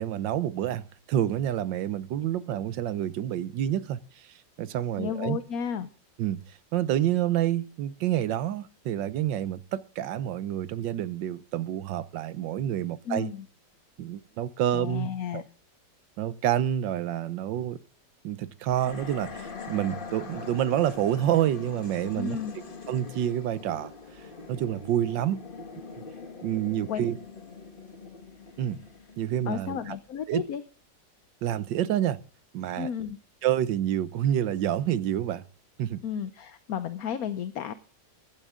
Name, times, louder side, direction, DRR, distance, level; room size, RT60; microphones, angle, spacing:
voice 1, 0.0-4.3 4.6-5.4 6.2-6.4 6.7-13.3 14.0-15.4 16.2-17.8 18.2-22.4 22.9-23.9 24.5-25.4 26.4-27.2 28.6-28.8 29.2-30.0 30.3-30.4 31.4-32.2 32.5-32.9 33.4-35.4 35.8-36.0, right 11 dB, 80° right, 1.5 m, -28 dB
voice 2, 5.0-5.9 13.1-13.4 14.7-15.4 22.1-22.6 26.9-27.0 29.5-30.6 32.8-33.2 36.0-37.7, left 8 dB, 60° left, 1.2 m, -32 dB
sound 1, 18.7-30.0, left 4 dB, 30° left, 1.5 m, -43 dB
15.5 x 12.0 x 3.7 m
omnidirectional pair, 2.0 m